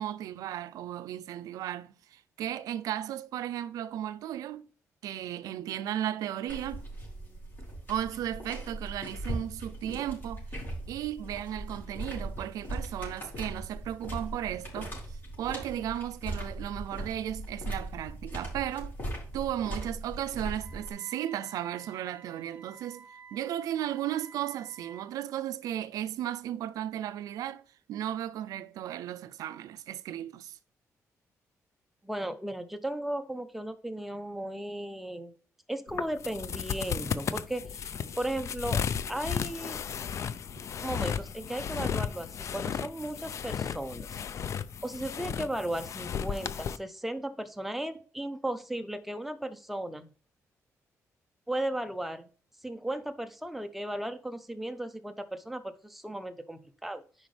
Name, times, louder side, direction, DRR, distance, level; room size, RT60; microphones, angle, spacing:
voice 1, 0.0-4.7 5.0-6.8 7.9-10.5 10.9-18.9 19.3-27.6 27.9-30.6, right 11 dB, 90° right, 0.4 m, -35 dB
sound 1, 6.5-20.9, right 1 dB, 35° left, 4.3 m, -39 dB
Wind instrument woodwind instrument, 20.6-25.1, right 6 dB, 30° right, 1.0 m, -52 dB
voice 2, 32.0-35.3 35.7-38.8 39.1-39.8 40.8-44.2 44.8-50.1 51.5-52.3 52.6-57.0, right 1 dB, 5° right, 0.7 m, -36 dB
sound 2, 35.9-46.8, left 7 dB, 55° left, 0.5 m, -34 dB
9.2 x 5.2 x 3.3 m
cardioid pair, 105°, 6 cm